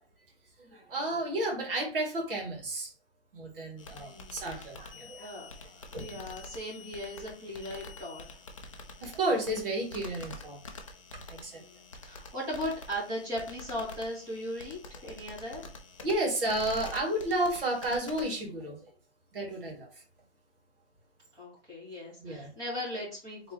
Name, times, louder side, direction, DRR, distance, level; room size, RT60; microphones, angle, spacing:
voice 1, 0.6-2.9 3.3-5.3 5.9-6.0 9.0-10.6 11.3-11.6 16.0-18.8 19.3-19.9 22.2-22.5, right 1 dB, 50° right, -1 dB, 2.4 m, -32 dB
sound 1, 3.8-18.4, left 3 dB, 30° left, 0.5 m, -47 dB
voice 2, 4.1-4.7 5.2-5.5 5.7-8.2 11.5-15.7 21.3-23.5, equal, 10° right, -8 dB, 2.5 m, -38 dB
4.6 x 3.7 x 2.9 m, 0.39 s
hypercardioid pair, 165°, 35 cm